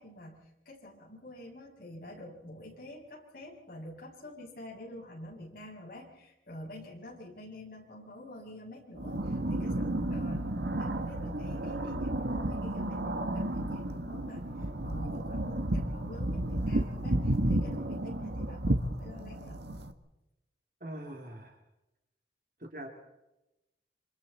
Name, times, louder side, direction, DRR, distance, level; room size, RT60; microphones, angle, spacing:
voice 1, 0.0-19.6, left 1 dB, 55° left, -2 dB, 7.5 m, -48 dB
sound 1, 8.9-19.9, right 1 dB, 75° right, 1.5 m, -32 dB
voice 2, 20.8-21.6 22.6-22.9, right 1 dB, 50° right, 2 dB, 3.0 m, -42 dB
27.5 x 26.5 x 4.3 m, 0.94 s
head